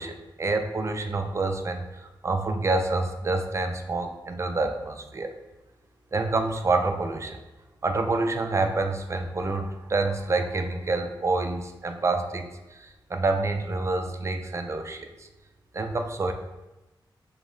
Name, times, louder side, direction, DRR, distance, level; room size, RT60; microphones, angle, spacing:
voice 1, 0.0-5.3 6.1-7.4 7.8-15.3 15.7-16.3, right 3 dB, 35° right, 6 dB, 0.4 m, -27 dB
5.0 x 2.0 x 3.8 m, 1.1 s
wide cardioid pair, 95°, 8 cm